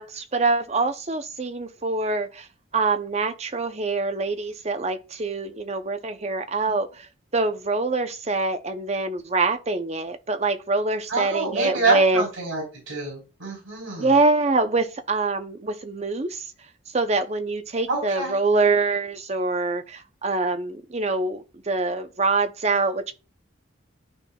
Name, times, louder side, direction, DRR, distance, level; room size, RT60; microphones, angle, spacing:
voice 1, 0.0-2.5 2.7-7.1 7.3-12.2 14.0-16.5 16.9-23.1, right 3 dB, 35° right, 0.6 m, -24 dB
voice 2, 11.1-14.2 17.9-18.4, right 3 dB, 80° right, 3.9 m, -26 dB
12.0 x 4.0 x 2.3 m
head